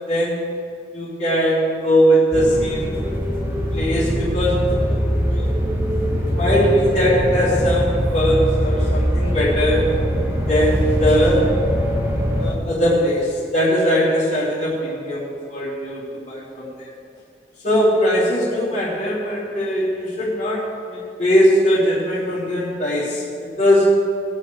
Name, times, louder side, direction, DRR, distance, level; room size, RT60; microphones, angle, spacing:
voice 1, 0.1-0.6 0.9-2.9 3.7-5.5 6.3-9.9 10.5-11.5 12.4-15.2 15.5-16.0 16.3-16.9 17.6-23.2 23.6-23.9, equal, 40° left, -11 dB, 3.1 m, -20 dB
sound 1, 2.3-12.5, equal, 15° right, 2.2 m, -22 dB
20.0 x 7.4 x 4.8 m, 2.3 s
head